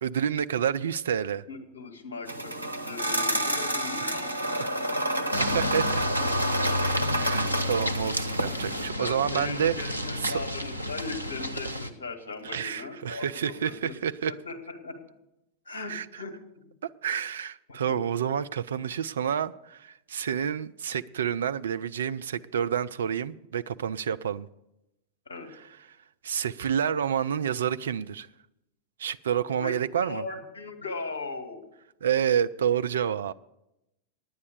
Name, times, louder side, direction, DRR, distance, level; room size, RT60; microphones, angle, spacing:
voice 1, 0.0-1.4 4.0-4.2 4.6-4.7 5.4-6.0 6.8-9.9 10.2-10.4 12.4-14.3 15.9-16.2 16.8-24.5 26.2-28.3 29.0-30.2 32.0-33.3, right 8 dB, 65° right, 0.3 m, -29 dB
voice 2, 1.5-5.6 6.5-6.6 9.0-14.0 14.3-15.0 15.7-16.6 17.9-18.0 25.3-25.5 29.6-31.7, left 3 dB, 70° left, 1.9 m, -39 dB
sound 1, 2.3-8.9, right 1 dB, 85° right, 0.7 m, -29 dB
sound 2, 5.3-11.9, left 1 dB, 90° left, 0.7 m, -31 dB
9.7 x 9.4 x 6.7 m
figure-of-eight pair, 90°, 0 cm